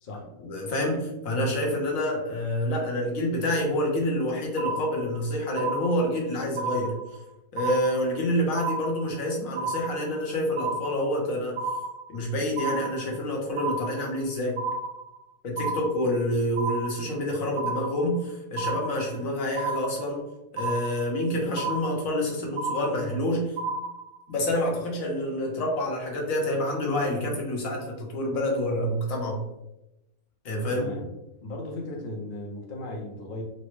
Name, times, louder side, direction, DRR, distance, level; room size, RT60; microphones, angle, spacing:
voice 1, 0.4-7.2 7.5-11.6 12.1-14.6 15.4-20.2 20.5-23.6 24.3-29.4 30.4-30.9, left 1 dB, 65° left, -1 dB, 1.2 m, -28 dB
sound 1, 4.6-5.2 5.6-6.2 6.6-7.2 7.6-8.2 8.6-9.2 9.6-10.2 10.6-11.2 11.6-12.2 12.6-13.2 13.6-14.2 14.6-15.2 15.6-16.2 16.6-17.2 17.6-18.2 18.6-19.2 19.6-20.2 20.6-21.2 21.6-22.2 22.6-23.2 23.6-24.2, right 3 dB, 80° right, 1.1 m, -32 dB
voice 2, 30.7-31.1 31.4-33.4, left 1 dB, 50° left, -1 dB, 0.6 m, -36 dB
4.0 x 2.1 x 3.1 m, 0.90 s
omnidirectional pair, 1.6 m